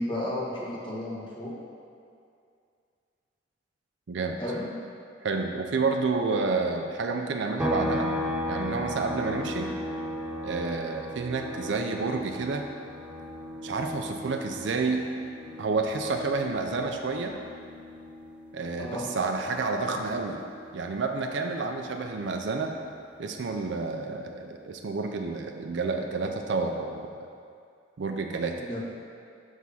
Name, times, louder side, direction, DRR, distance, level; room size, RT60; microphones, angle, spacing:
voice 1, 0.0-1.5 4.4-4.7 18.8-19.1 28.6-28.8, left 1 dB, 25° left, -7 dB, 1.3 m, -33 dB
voice 2, 4.1-4.4 5.2-8.2 8.5-9.7 10.4-12.7 13.6-15.0 15.6-17.4 18.5-20.4 20.7-22.7 23.2-27.1 28.0-28.5, right 4 dB, 70° right, 3 dB, 0.4 m, -29 dB
sound 1, 7.6-21.1 21.5-23.7, left 1 dB, 5° right, 0.5 m, -37 dB
6.1 x 3.5 x 5.6 m, 2.4 s
head